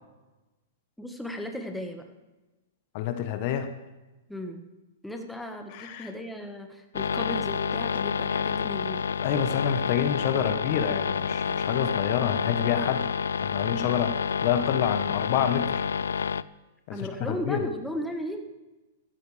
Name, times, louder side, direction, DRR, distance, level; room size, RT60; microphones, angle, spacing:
voice 1, 1.0-2.0 4.3-4.6 5.0-9.0 16.9-18.4, equal, ahead, 4 dB, 1.4 m, -35 dB
voice 2, 2.9-3.7 5.7-6.1 9.2-13.0 13.4-15.8 16.9-17.0 17.3-17.6, left 9 dB, 50° left, 8 dB, 1.1 m, -27 dB
sound 1, 6.9-16.4, left 6 dB, 80° left, 0.4 m, -29 dB
15.0 x 13.5 x 3.4 m, 1.1 s
hypercardioid pair, 115°, 0 cm